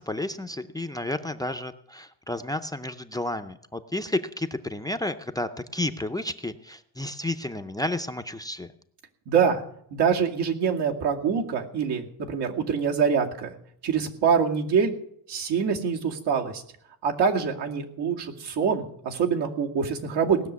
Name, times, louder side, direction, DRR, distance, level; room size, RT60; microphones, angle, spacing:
voice 1, 0.0-8.7, left 1 dB, 10° left, 9 dB, 0.5 m, -31 dB
voice 2, 9.3-9.6 9.9-13.5 13.8-14.9 15.3-16.6 17.0-20.4, right 6 dB, 85° right, 1 dB, 2.4 m, -25 dB
18.0 x 6.6 x 9.4 m, 0.69 s
cardioid pair, 170°, 40 cm